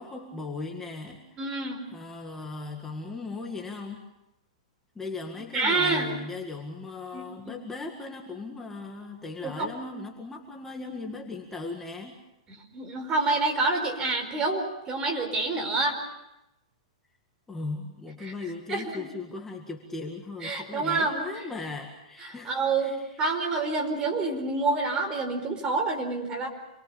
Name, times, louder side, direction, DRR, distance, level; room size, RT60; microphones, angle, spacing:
voice 1, 0.0-1.4 1.9-4.0 5.0-12.2 17.5-22.5 22.8-23.2, left 3 dB, 10° left, 1 dB, 1.9 m, -38 dB
voice 2, 1.4-1.8 5.5-6.1 7.1-7.6 9.4-9.7 12.5-16.0 18.2-18.3 18.7-19.1 20.4-21.2 22.2-26.5, right 3 dB, 20° right, 4 dB, 4.7 m, -28 dB
27.5 x 22.5 x 7.1 m, 0.92 s
hypercardioid pair, 145°, 4 cm